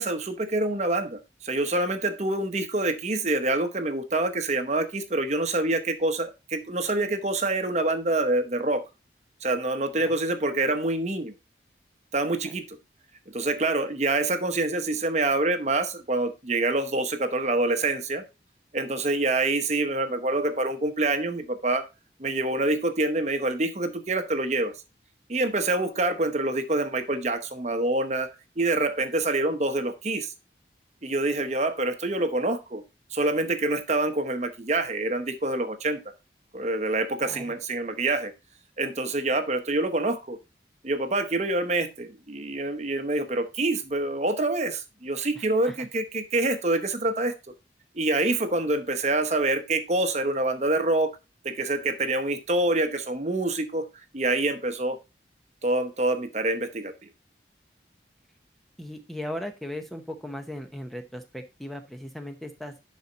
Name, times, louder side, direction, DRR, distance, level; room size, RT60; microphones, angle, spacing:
voice 1, 0.0-8.8 9.4-11.3 12.1-12.8 13.3-18.2 18.7-21.9 22.2-24.7 25.3-28.3 28.6-30.3 31.0-32.8 33.1-36.0 36.5-38.3 38.8-40.4 40.8-47.3 47.9-51.1 51.4-53.9 54.1-55.0 55.6-57.1, right 2 dB, 40° right, 8 dB, 0.9 m, -26 dB
voice 2, 37.2-37.5 45.4-45.9 58.8-62.7, left 1 dB, ahead, 5 dB, 0.7 m, -38 dB
11.0 x 4.2 x 3.9 m, 0.27 s
head